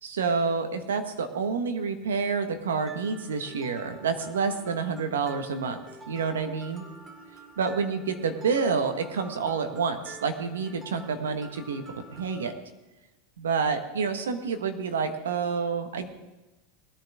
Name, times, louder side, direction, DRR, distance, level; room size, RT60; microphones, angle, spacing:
voice 1, 0.0-5.8 6.1-6.8 7.6-11.8 12.1-12.5 13.4-16.1, right 5 dB, 85° right, 7 dB, 1.4 m, -28 dB
Mallet percussion, 2.9-12.5, right 3 dB, 25° right, 2.5 m, -48 dB
20.0 x 10.0 x 3.6 m, 1.1 s
hypercardioid pair, 105°, 0 cm